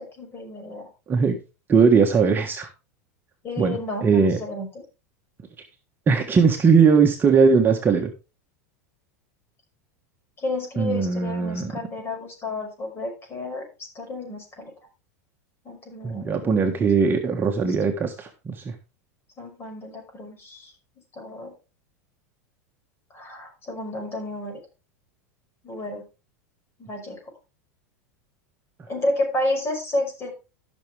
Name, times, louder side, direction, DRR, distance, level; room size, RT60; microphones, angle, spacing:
voice 1, 0.0-0.9 3.4-4.7 10.4-13.7 13.9-14.7 15.6-16.5 19.4-20.7 21.1-21.6 23.1-24.6 25.6-26.0 26.8-27.2 28.9-30.3, left 1 dB, 30° left, 3 dB, 5.6 m, -31 dB
voice 2, 1.7-2.7 3.6-4.4 6.1-8.1 10.8-11.7 16.0-18.7, right 5 dB, 25° right, 3 dB, 1.5 m, -19 dB
14.0 x 6.5 x 3.5 m, 0.30 s
hypercardioid pair, 110°, 9 cm